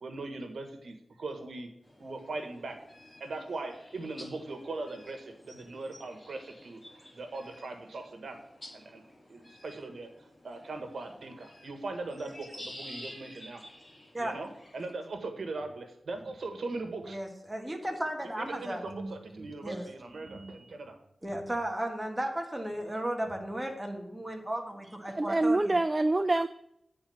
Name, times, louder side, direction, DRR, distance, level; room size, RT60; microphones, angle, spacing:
voice 1, 0.0-1.7 2.0-2.8 3.2-8.4 8.7-9.0 9.3-13.6 14.2-17.2 18.4-21.0, right 3 dB, 80° right, 5 dB, 1.4 m, -40 dB
sound 1, 1.8-14.9, left 1 dB, 25° left, 2.2 m, -51 dB
voice 2, 17.0-18.8 19.6-19.9 21.2-25.8, right 1 dB, 15° right, 2 dB, 1.6 m, -35 dB
voice 3, 25.1-26.5, right 2 dB, 30° right, 10 dB, 0.3 m, -26 dB
9.3 x 4.4 x 7.0 m, 0.78 s
wide cardioid pair, 95°, 0 cm